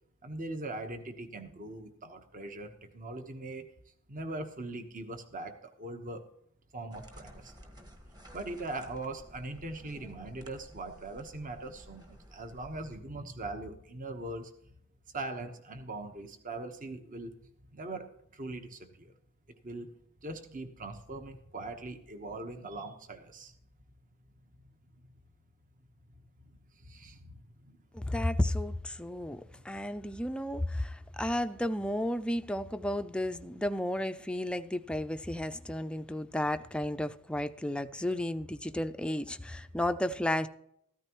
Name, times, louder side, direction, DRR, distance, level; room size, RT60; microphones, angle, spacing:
voice 1, 0.2-3.7 4.1-5.5 5.8-6.2 6.7-7.5 8.3-14.5 15.1-17.3 17.7-18.0 18.3-19.1 19.6-19.9 20.2-23.5 26.7-27.8 29.5-29.6, right 2 dB, 35° right, 1.1 m, -41 dB
sound 1, 6.9-13.0, equal, 20° right, 1.5 m, -53 dB
voice 2, 27.9-40.5, left 1 dB, 5° left, 0.4 m, -33 dB
14.5 x 13.0 x 3.0 m
head